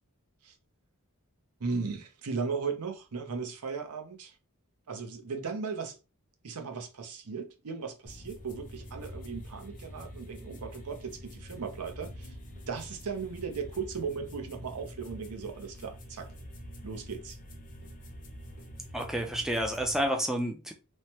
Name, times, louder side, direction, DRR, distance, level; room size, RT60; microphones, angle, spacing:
voice 1, 1.6-4.4 4.9-6.0 6.4-12.3 12.7-16.3 16.8-17.4, right 5 dB, 80° right, 0.6 m, -37 dB
sound 1, 8.0-20.1, equal, 35° left, 0.6 m, -46 dB
voice 2, 18.9-20.7, right 1 dB, ahead, 0.3 m, -30 dB
3.1 x 2.1 x 2.8 m
head